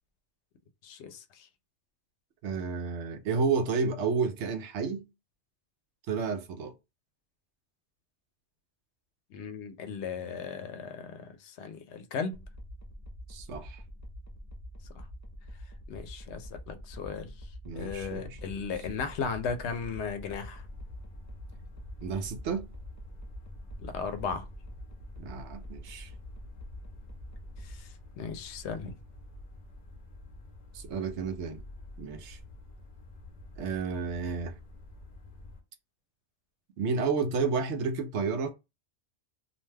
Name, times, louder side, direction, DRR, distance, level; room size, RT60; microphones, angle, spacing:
voice 1, 0.8-1.5 9.3-12.4 14.9-15.1 15.9-20.7 23.8-24.5 27.6-28.9, left 5 dB, 80° left, 0.9 m, -36 dB
voice 2, 2.4-5.1 6.1-6.7 13.3-13.8 17.6-18.5 22.0-22.7 25.2-26.1 30.7-31.6 32.0-32.4 33.6-34.6 36.8-38.5, right 5 dB, 85° right, 0.9 m, -31 dB
sound 1, 12.3-27.8, equal, 30° left, 0.3 m, -46 dB
sound 2, 20.5-35.6, left 2 dB, 45° left, 0.7 m, -49 dB
2.5 x 2.2 x 3.2 m
omnidirectional pair, 1.1 m